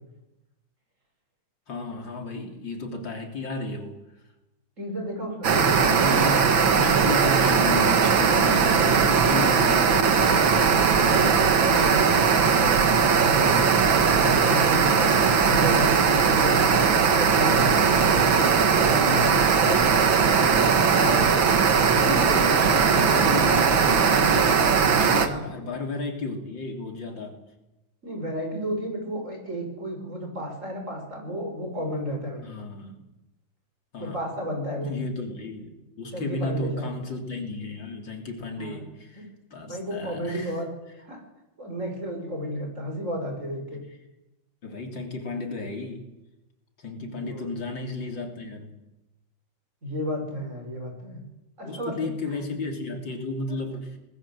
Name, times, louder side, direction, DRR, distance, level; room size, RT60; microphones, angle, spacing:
voice 1, 1.7-4.0 5.5-10.2 21.8-27.4 32.4-33.0 33.9-34.2 34.8-40.5 44.6-46.1 46.8-48.8 51.6-54.0, left 2 dB, 70° left, 3 dB, 4.2 m, -33 dB
voice 2, 4.8-5.9 9.9-13.7 14.1-15.1 15.4-18.4 18.8-20.6 21.0-21.9 25.3-25.4 28.0-32.4 34.0-34.9 36.1-36.9 38.6-38.8 39.1-39.2 39.6-40.7 41.0-41.2 41.6-43.8 47.0-47.5 49.8-51.2 51.6-52.1 53.5-53.6, equal, 40° right, 2 dB, 6.3 m, -32 dB
sound 1, 5.4-25.3, right 6 dB, 85° right, 2.4 m, -19 dB
24.5 x 20.0 x 7.7 m, 0.98 s
omnidirectional pair, 2.1 m